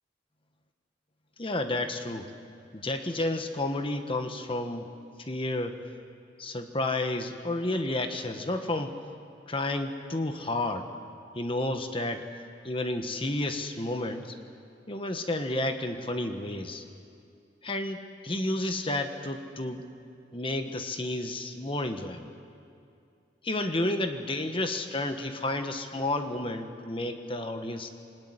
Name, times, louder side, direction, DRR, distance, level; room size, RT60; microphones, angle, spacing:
voice 1, 1.4-2.3 2.7-4.9 5.2-5.8 6.4-8.9 9.5-10.9 11.3-12.3 12.6-14.4 14.9-16.8 17.6-19.8 20.3-22.3 23.4-27.9, left 2 dB, 30° left, 6 dB, 1.4 m, -31 dB
27.0 x 19.0 x 9.9 m, 2.5 s
head